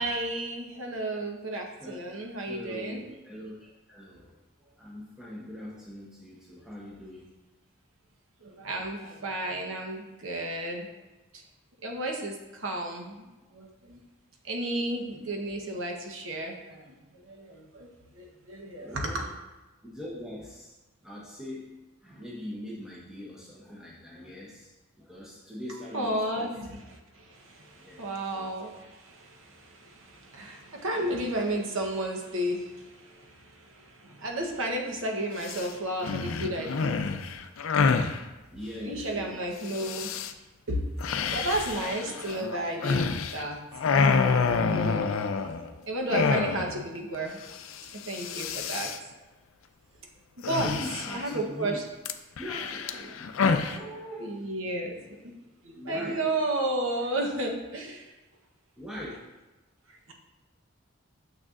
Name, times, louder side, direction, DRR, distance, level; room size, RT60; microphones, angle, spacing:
voice 1, 0.0-3.0 8.4-10.9 11.3-11.4 11.8-13.3 13.5-14.0 14.4-19.1 25.9-26.7 27.1-37.1 38.8-40.1 40.7-40.8 41.3-43.6 44.6-45.1 45.4-45.6 45.9-47.4 47.9-48.9 50.5-51.8 53.0-53.8 54.2-55.3 55.6-58.1 59.9-60.1, right 1 dB, 70° right, 1 dB, 1.0 m, -33 dB
voice 2, 2.5-7.3 13.4-13.5 15.4-15.5 17.3-17.4 18.8-19.3 19.8-20.7 21.0-24.7 25.0-26.6 27.8-28.5 34.0-34.2 38.5-39.5 48.4-48.7 49.9-50.0 50.6-51.8 52.4-54.5 55.7-56.2 58.8-59.2, equal, 5° right, -6 dB, 0.7 m, -42 dB
sound 1, 35.4-35.7 36.0-38.2 39.7-40.3 41.0-43.5 43.7-45.7 46.1-46.8 47.1-47.2 47.5-47.8 48.0-49.0 50.4-51.4 52.0-53.8, left 5 dB, 70° left, 0.4 m, -27 dB
6.8 x 6.4 x 2.5 m, 1.1 s
head